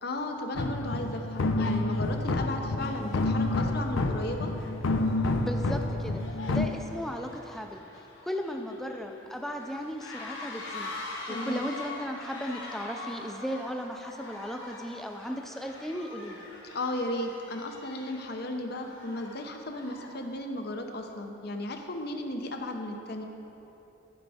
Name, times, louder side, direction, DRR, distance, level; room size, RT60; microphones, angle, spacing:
voice 1, 0.0-4.5 11.3-11.7 16.7-23.2, left 1 dB, 55° left, 4 dB, 0.7 m, -35 dB
sound 1, 0.6-6.7, left 2 dB, 90° left, 0.5 m, -28 dB
sound 2, 3.7-3.9 4.2-20.2, left 2 dB, 70° left, 1.6 m, -44 dB
voice 2, 5.4-6.2 6.5-7.8 8.2-10.9 11.3-16.4, equal, ahead, 4 dB, 0.4 m, -36 dB
14.0 x 5.1 x 3.5 m, 3.0 s
head